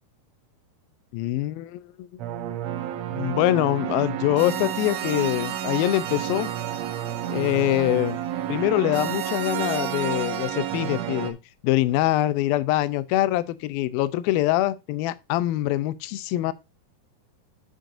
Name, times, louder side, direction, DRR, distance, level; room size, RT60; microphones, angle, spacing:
voice 1, 1.1-2.1 3.1-6.5 7.3-8.2 8.5-11.4 11.6-16.5, left 15 dB, 80° left, 2.3 m, -24 dB
sound 1, 2.2-11.3, right 11 dB, 90° right, 1.5 m, -30 dB
9.1 x 6.2 x 2.5 m
omnidirectional pair, 4.4 m